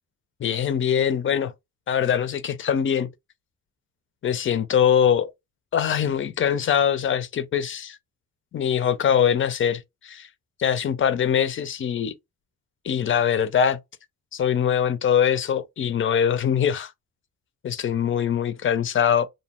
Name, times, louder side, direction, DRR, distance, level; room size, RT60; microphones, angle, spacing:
voice 1, 0.4-1.5 1.9-3.1 4.2-5.3 5.7-8.0 8.5-10.3 10.6-12.1 12.8-13.8 14.3-16.9 17.6-19.3, left 8 dB, 40° left, 0.5 m, -22 dB
2.6 x 2.0 x 2.9 m
cardioid pair, 90°, 30 cm